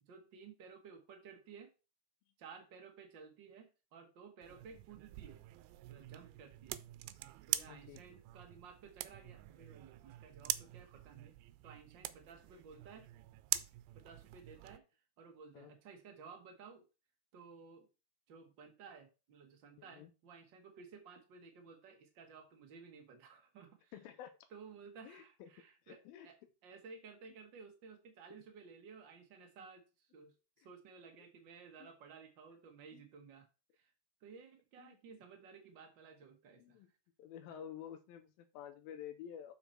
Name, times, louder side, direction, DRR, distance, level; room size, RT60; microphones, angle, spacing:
voice 1, 0.0-1.7 2.4-5.4 5.9-6.8 7.5-11.3 11.6-13.1 13.9-14.8 15.2-16.8 17.3-17.9 18.3-23.9 24.5-26.4 26.6-33.5 33.7-33.9 34.2-36.8 37.5-37.6, right 5 dB, 65° right, 4 dB, 1.1 m, -56 dB
sound 1, 4.4-14.8, right 16 dB, 90° right, 2.4 m, -44 dB
voice 2, 7.6-8.2 15.5-15.7 19.8-20.1 23.9-24.4 25.0-25.5 25.8-26.3 30.6-30.7 31.2-31.3 31.8-31.9 32.9-33.0 34.8-35.0 36.6-36.9 37.2-39.5, left 9 dB, 85° left, 8 dB, 2.6 m, -51 dB
7.2 x 5.9 x 4.4 m, 0.31 s
omnidirectional pair, 4.1 m